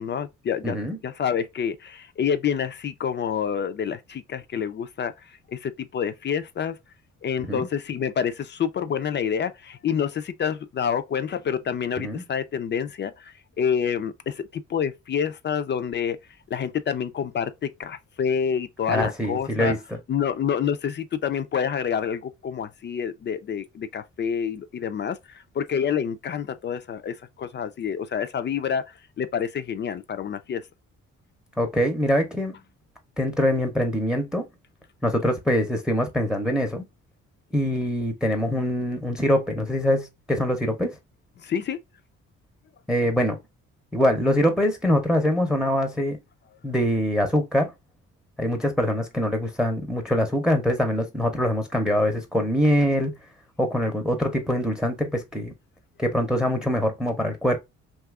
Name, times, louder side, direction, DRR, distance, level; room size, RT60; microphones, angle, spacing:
voice 1, 0.0-0.8 1.0-6.8 7.2-16.2 16.5-19.7 20.1-30.6 41.4-41.8, left 7 dB, 40° left, 0.4 m, -28 dB
voice 2, 0.6-1.0 7.4-7.7 12.0-12.2 18.9-19.8 31.6-32.5 33.2-34.4 35.0-36.8 37.5-40.9 42.9-43.4 43.9-46.2 46.6-47.7 48.4-53.1 53.6-55.5 56.0-57.6, equal, 5° right, 0.6 m, -23 dB
2.7 x 2.4 x 3.5 m
cardioid pair, 90°, 30 cm